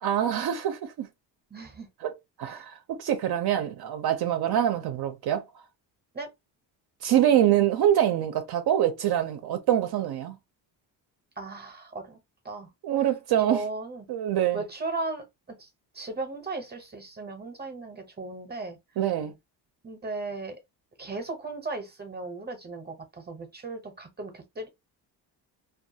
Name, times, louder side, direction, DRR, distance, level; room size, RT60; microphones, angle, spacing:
voice 1, 0.0-1.1 2.0-2.1 2.4-5.4 7.0-10.4 12.8-13.6 14.1-14.6 19.0-19.3, right 11 dB, 60° right, 0.5 m, -25 dB
voice 2, 1.5-1.9 6.1-6.3 11.4-12.2 12.4-12.7 13.5-14.1 14.5-15.7 15.9-18.8 19.8-20.6 21.0-24.7, right 3 dB, 25° right, 0.7 m, -36 dB
2.3 x 2.3 x 2.7 m
cardioid pair, 105°, 43 cm